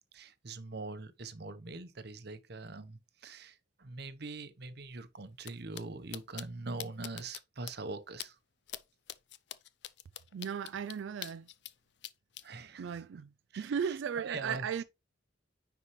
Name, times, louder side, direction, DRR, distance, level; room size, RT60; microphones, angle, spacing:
voice 1, 0.1-8.4 12.4-13.1 13.5-14.8, right 3 dB, 60° right, 0.9 m, -43 dB
sound 1, 5.4-5.5 5.7-5.8 6.1-6.4 6.8-7.4 7.7-7.8 8.2-8.3 8.7-8.8 9.1-11.7 12.0-12.4, left 12 dB, 60° left, 0.5 m, -43 dB
voice 2, 10.3-11.5 12.8-13.3 13.6-14.8, right 7 dB, 75° right, 0.4 m, -36 dB
9.8 x 4.7 x 3.1 m
head